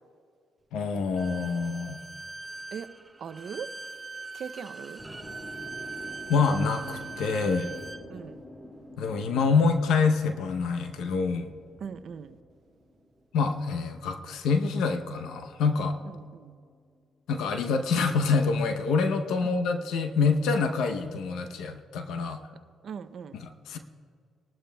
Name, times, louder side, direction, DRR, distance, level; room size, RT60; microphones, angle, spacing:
voice 1, 0.7-2.0 6.3-7.7 9.0-11.5 13.3-16.0 17.3-22.4 23.3-23.8, left 4 dB, 85° left, 7 dB, 0.7 m, -26 dB
Bowed string instrument, 1.2-8.0, right 3 dB, 15° right, 0.8 m, -41 dB
voice 2, 3.2-3.7 4.3-5.0 8.1-8.4 11.8-12.4 16.0-16.5 19.4-19.5 22.8-23.4, right 7 dB, 60° right, 11 dB, 0.6 m, -40 dB
sound 1, 5.0-15.1 15.4-17.0, equal, 15° left, 1.9 m, -48 dB
21.0 x 12.0 x 2.3 m, 2.1 s
cardioid pair, 90°, 0 cm